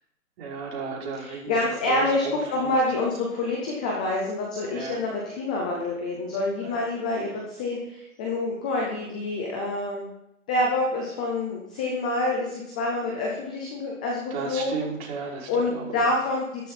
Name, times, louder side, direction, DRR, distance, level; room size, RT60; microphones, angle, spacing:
voice 1, 0.4-1.5 1.9-2.7 4.7-5.0 6.6-6.7 14.3-16.0, right 5 dB, 45° right, -3 dB, 5.8 m, -34 dB
voice 2, 1.2-10.1 10.5-14.9 15.5-16.7, left 2 dB, 5° left, -2 dB, 0.4 m, -27 dB
13.0 x 12.5 x 4.2 m, 0.86 s
hypercardioid pair, 135°, 43 cm